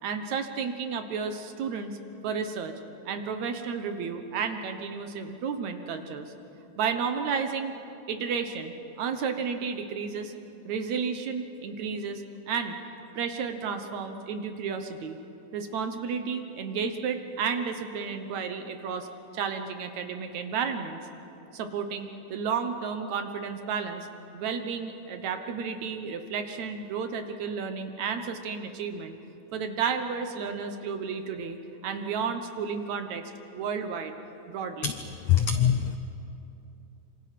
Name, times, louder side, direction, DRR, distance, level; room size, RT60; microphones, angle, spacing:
voice 1, 0.0-2.7 3.1-6.3 6.8-7.7 8.1-10.3 10.7-12.7 13.2-15.2 15.5-19.1 19.3-21.0 21.5-24.1 24.3-29.2 29.5-31.6 31.8-33.2 33.5-34.1 34.5-34.9, right 6 dB, 65° right, 7 dB, 2.2 m, -32 dB
voice 2, 35.3-36.0, left 9 dB, 80° left, 8 dB, 1.5 m, -22 dB
26.0 x 26.0 x 5.9 m, 2.9 s
omnidirectional pair, 3.9 m